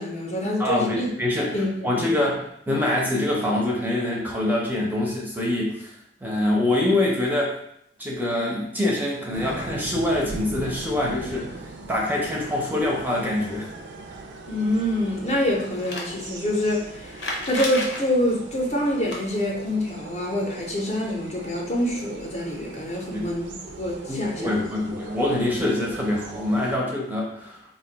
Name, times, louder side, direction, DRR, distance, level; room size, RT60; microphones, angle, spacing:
voice 1, 0.0-1.1 1.5-2.3 14.5-24.6, left 1 dB, 40° left, -2 dB, 0.6 m, -26 dB
voice 2, 0.6-1.5 1.8-5.9 6.2-7.5 8.0-11.6 11.9-13.7 23.1-23.3 24.1-27.6, left 1 dB, 10° right, -3 dB, 0.5 m, -25 dB
sound 1, 9.3-26.8, right 3 dB, 80° right, 0.4 m, -40 dB
sound 2, 15.7-16.1 17.1-18.0 18.9-19.2 21.7-21.8 22.0-22.1 23.2-23.3, left 2 dB, 75° left, 0.8 m, -31 dB
2.5 x 2.2 x 3.9 m, 0.72 s
head